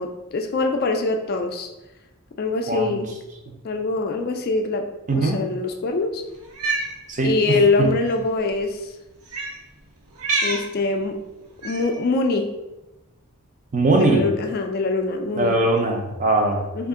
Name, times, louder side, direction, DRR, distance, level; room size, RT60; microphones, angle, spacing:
voice 1, 0.0-1.7 2.4-3.1 3.6-6.2 7.2-8.9 10.4-11.2 11.6-12.6 13.9-15.6 16.7-16.9, left 3 dB, 45° left, 5 dB, 0.3 m, -24 dB
voice 2, 2.7-3.0 5.1-5.4 7.1-7.9 13.7-14.2 15.4-16.6, right 2 dB, 35° right, 3 dB, 0.5 m, -21 dB
Cat, 6.4-6.9 8.0-8.1 9.3-9.6 10.2-10.7 11.6-12.0, right 3 dB, 85° right, 0.7 m, -26 dB
3.5 x 2.4 x 3.6 m, 0.99 s
head